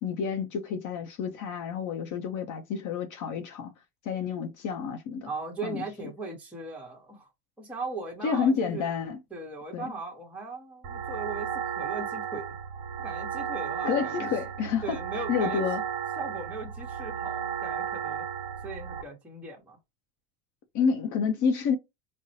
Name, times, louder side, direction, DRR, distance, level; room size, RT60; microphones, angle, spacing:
voice 1, 0.0-3.7 4.0-5.3 5.6-5.8 8.2-9.2 9.7-9.9 13.8-15.0 15.3-15.8 20.7-21.8, left 6 dB, 45° left, 0.7 m, -29 dB
voice 2, 5.2-7.3 7.6-8.9 9.3-12.5 13.0-14.3 14.8-15.6 16.2-18.3 18.6-19.8, right 3 dB, 5° right, 1.0 m, -38 dB
sound 1, 10.8-19.0, right 8 dB, 50° right, 0.8 m, -34 dB
3.9 x 2.1 x 2.7 m
supercardioid pair, 120°, 44 cm